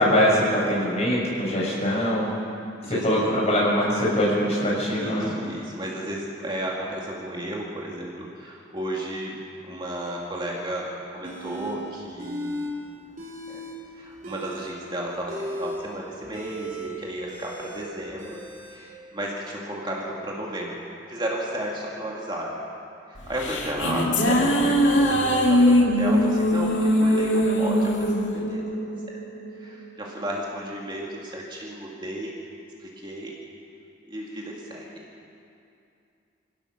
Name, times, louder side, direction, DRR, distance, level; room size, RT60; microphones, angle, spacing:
voice 1, 0.0-2.3 2.9-5.3 24.2-24.4, equal, 35° left, -5 dB, 6.8 m, -22 dB
voice 2, 2.8-3.4 4.9-12.6 13.5-13.6 13.9-18.4 18.7-20.8 21.1-22.6 23.1-28.8 29.1-29.2 29.6-32.3 32.8-33.4 34.1-35.0, right 1 dB, 25° right, -3 dB, 2.2 m, -33 dB
sound 1, 11.2-11.8 12.2-12.7 13.0-13.8 14.1-18.8, equal, 45° right, 4.5 m, -36 dB
sound 2, 23.2-29.7, equal, 75° left, 2.3 m, -21 dB
25.5 x 16.5 x 6.6 m, 2.6 s
head